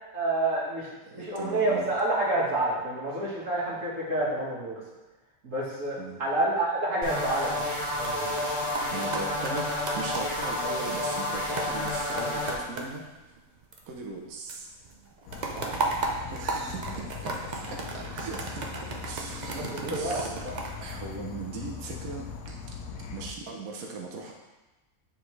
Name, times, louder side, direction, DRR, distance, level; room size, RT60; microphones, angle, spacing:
voice 1, 0.1-4.8 5.4-7.7 8.0-8.3 15.5-15.8 19.1-20.5, right 2 dB, 65° right, -6 dB, 2.1 m, -29 dB
voice 2, 1.1-1.9 6.0-6.2 8.9-13.1 13.9-14.7 16.3-20.3 20.8-22.6 23.1-24.3, right 3 dB, 80° right, 0 dB, 1.2 m, -39 dB
sound 1, 7.0-12.5, left 1 dB, 25° left, 1.9 m, -30 dB
sound 2, 7.9-14.2 14.5-21.7 22.2-22.5, right 3 dB, 40° right, 0.7 m, -36 dB
Insect / Frog, 15.3-23.3, left 6 dB, 85° left, 1.1 m, -41 dB
9.4 x 4.2 x 3.2 m, 1.1 s
omnidirectional pair, 1.5 m